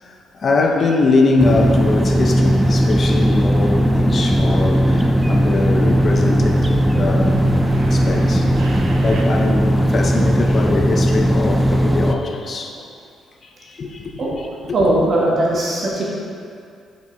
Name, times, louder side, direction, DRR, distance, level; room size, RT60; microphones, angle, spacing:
voice 1, 0.0-7.4 7.9-12.8 13.4-14.4 15.0-15.1, left 3 dB, 45° left, 2 dB, 0.6 m, -22 dB
sound 1, 1.4-12.2, equal, 5° right, 0.4 m, -17 dB
sound 2, 3.9-9.2, right 3 dB, 80° right, 0.8 m, -30 dB
voice 2, 14.7-16.1, right 1 dB, 50° right, -4 dB, 1.5 m, -19 dB
5.5 x 5.3 x 3.9 m, 2.4 s
cardioid pair, 90°, 0 cm